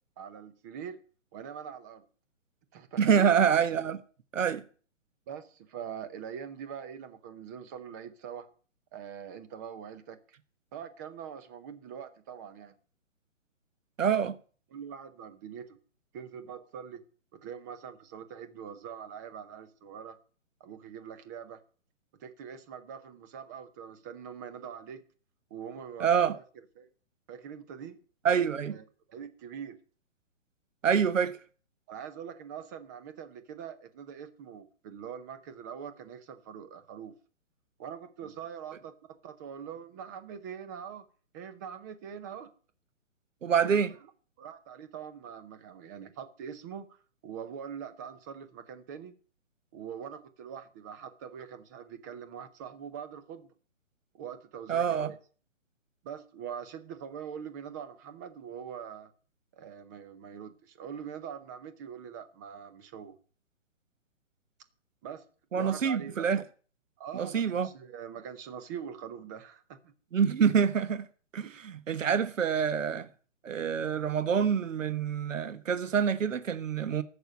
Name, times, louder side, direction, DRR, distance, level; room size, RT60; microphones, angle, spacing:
voice 1, 0.2-1.0 1.3-2.0 2.7-3.3 5.3-8.5 8.9-10.2 10.7-12.7 14.7-15.8 16.1-17.0 17.3-20.2 20.6-21.6 22.2-25.0 25.5-26.4 26.8-26.9 27.3-28.0 28.7-29.8 31.9-37.1 37.8-38.9 39.2-41.1 41.3-42.5 44.4-47.0 47.2-49.1 49.7-53.5 54.1-55.2 56.0-59.1 59.5-63.2 65.0-65.2 65.5-66.3 67.0-69.9 71.4-71.6, right 8 dB, 15° right, 0.7 m, -43 dB
voice 2, 3.0-4.0 4.3-4.6 14.0-14.4 26.0-26.3 28.2-28.8 30.8-31.4 43.4-43.9 54.7-55.1 65.5-66.4 67.1-67.7 70.1-71.0 71.3-73.1 73.4-77.0, right 7 dB, 85° right, 1.3 m, -26 dB
13.5 x 6.8 x 8.6 m
hypercardioid pair, 160°, 38 cm